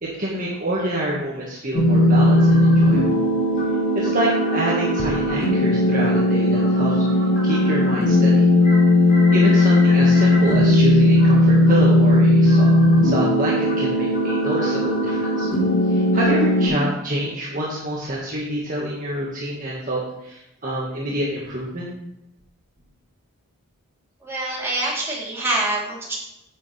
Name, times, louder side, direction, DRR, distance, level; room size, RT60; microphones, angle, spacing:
voice 1, 0.0-3.2 4.0-7.0 7.4-8.5 9.3-12.7 13.0-15.5 15.9-21.9, right 1 dB, 40° right, -5 dB, 1.7 m, -27 dB
sound 1, 1.7-16.7, left 1 dB, 50° left, 3.5 m, -17 dB
voice 2, 24.2-26.1, right 2 dB, 10° right, -6 dB, 3.3 m, -25 dB
10.0 x 8.0 x 3.4 m, 0.87 s
head